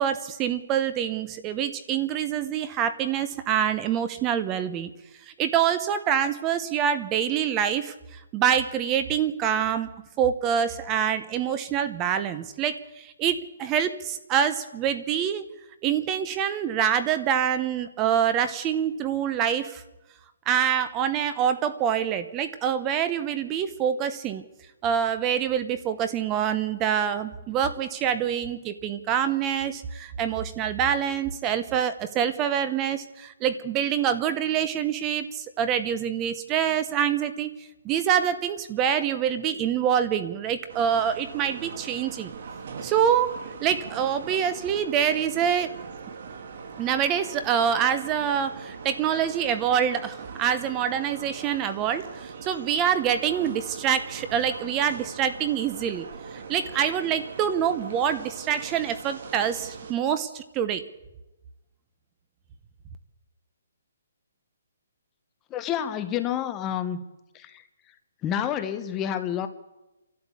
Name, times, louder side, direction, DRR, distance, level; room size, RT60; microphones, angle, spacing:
voice 1, 0.0-4.9 5.3-9.9 10.2-15.5 15.8-19.8 20.5-24.4 24.8-37.5 37.8-42.3 42.8-43.3 43.6-45.7 46.8-60.8, right 9 dB, 15° right, 11 dB, 0.9 m, -26 dB
sound 1, 40.7-59.9, right 5 dB, 45° right, 2.3 m, -41 dB
voice 2, 65.5-67.0 67.3-67.6 68.2-69.5, left 10 dB, 15° left, 10 dB, 0.9 m, -29 dB
29.0 x 12.0 x 8.4 m, 1.0 s
hypercardioid pair, 165°, 0 cm